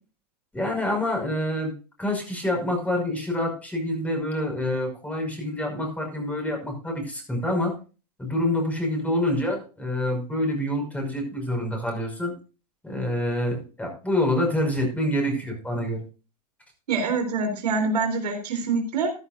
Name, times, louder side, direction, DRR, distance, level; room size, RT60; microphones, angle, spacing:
voice 1, 0.5-1.7 2.0-7.7 8.2-12.3 12.8-16.0, left 1 dB, 5° left, 2 dB, 5.7 m, -26 dB
voice 2, 16.9-19.1, right 4 dB, 85° right, 4 dB, 3.6 m, -25 dB
14.0 x 11.5 x 2.6 m, 0.34 s
hypercardioid pair, 110°, 20 cm